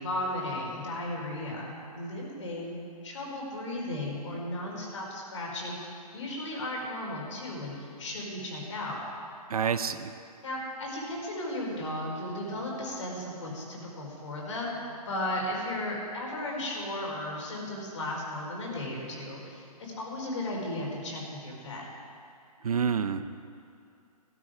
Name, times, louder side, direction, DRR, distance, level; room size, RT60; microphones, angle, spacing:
voice 1, 0.0-9.0 10.4-21.8, left 1 dB, 50° left, -2 dB, 4.6 m, -35 dB
voice 2, 9.5-10.1 22.6-23.3, right 6 dB, 65° right, 12 dB, 0.8 m, -28 dB
16.0 x 13.5 x 5.0 m, 2.5 s
hypercardioid pair, 165°, 20 cm